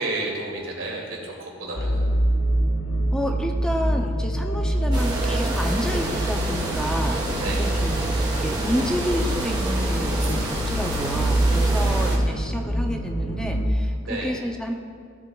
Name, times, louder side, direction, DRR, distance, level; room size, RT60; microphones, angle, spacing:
voice 1, 0.0-2.0 7.4-7.7 11.7-12.1 14.1-14.3, right 2 dB, 80° right, -2 dB, 2.3 m, -31 dB
sound 1, 1.8-13.7, right 1 dB, 70° left, 1.1 m, -25 dB
voice 2, 3.1-8.1 8.4-14.7, equal, 5° left, 3 dB, 0.4 m, -30 dB
sound 2, 4.9-12.2, right 1 dB, 20° right, 1.3 m, -29 dB
16.0 x 8.1 x 2.3 m, 2.1 s
head